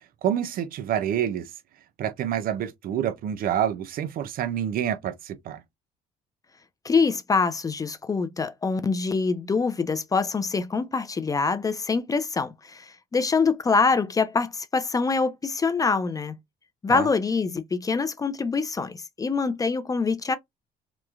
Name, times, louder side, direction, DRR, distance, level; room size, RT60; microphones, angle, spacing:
voice 1, 0.2-1.5 2.0-5.6 16.9-17.1, right 10 dB, 60° right, 0.4 m, -27 dB
voice 2, 6.8-16.4 16.8-20.4, left 4 dB, 20° left, 0.3 m, -25 dB
3.0 x 2.1 x 2.3 m
cardioid pair, 110°, 17 cm